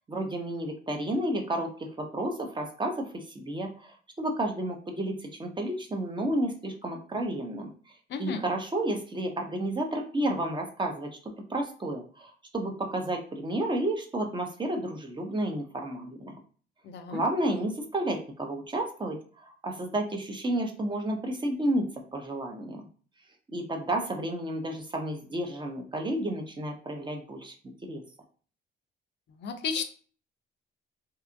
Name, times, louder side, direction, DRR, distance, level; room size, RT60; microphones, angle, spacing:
voice 1, 0.1-1.7 2.0-7.7 8.2-16.4 17.1-22.8 23.5-27.5 27.8-28.0, right 1 dB, 25° right, 3 dB, 0.6 m, -31 dB
voice 2, 8.1-8.4 16.8-17.2 29.4-29.8, left 6 dB, 60° left, 7 dB, 0.5 m, -33 dB
2.8 x 2.3 x 2.5 m, 0.42 s
cardioid pair, 90°, 20 cm